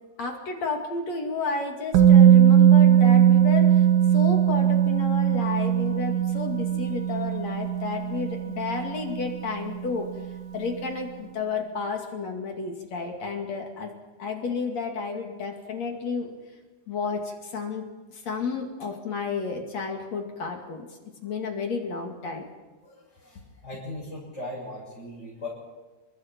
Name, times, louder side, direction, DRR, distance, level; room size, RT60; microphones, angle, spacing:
voice 1, 0.2-3.9 4.1-10.1 10.5-13.9 14.2-16.3 16.9-17.8 18.1-20.9 21.2-22.4, left 4 dB, 45° left, 2 dB, 2.9 m, -31 dB
Musical instrument, 1.9-9.8 10.1-10.3, right 9 dB, 60° right, 2.3 m, -19 dB
voice 2, 22.8-25.5, left 1 dB, 15° left, -7 dB, 6.9 m, -39 dB
30.0 x 23.0 x 4.6 m, 1.3 s
omnidirectional pair, 5.1 m